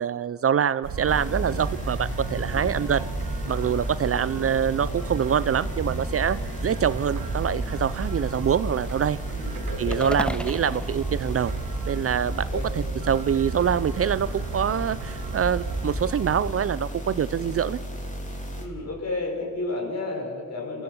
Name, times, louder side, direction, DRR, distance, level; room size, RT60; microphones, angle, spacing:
voice 1, 0.0-3.0 3.5-6.4 6.6-9.2 9.8-11.5 11.9-12.5 13.1-17.8, right 8 dB, 45° right, 17 dB, 0.5 m, -25 dB
sound 1, 0.8-16.5, right 3 dB, 85° right, 2.2 m, -33 dB
sound 2, 1.1-18.6, equal, 20° left, 3.5 m, -35 dB
voice 2, 2.4-2.8 4.1-4.3 9.3-10.1 12.5-12.7 18.5-20.8, left 2 dB, 50° left, 1 dB, 5.9 m, -32 dB
sound 3, 9.9-12.2, left 1 dB, 5° left, 0.7 m, -36 dB
28.0 x 15.5 x 7.1 m, 2.2 s
cardioid pair, 100°, 34 cm